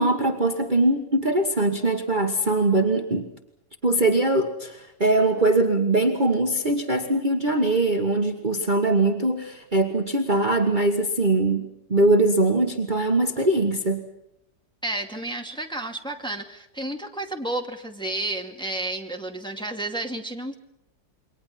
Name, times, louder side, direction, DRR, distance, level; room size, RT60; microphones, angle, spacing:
voice 1, 0.0-3.3 3.8-14.0, right 2 dB, 30° right, 4 dB, 1.7 m, -22 dB
voice 2, 14.8-20.5, right 2 dB, 5° left, 2 dB, 2.3 m, -31 dB
28.5 x 23.5 x 5.9 m, 0.83 s
omnidirectional pair, 1.9 m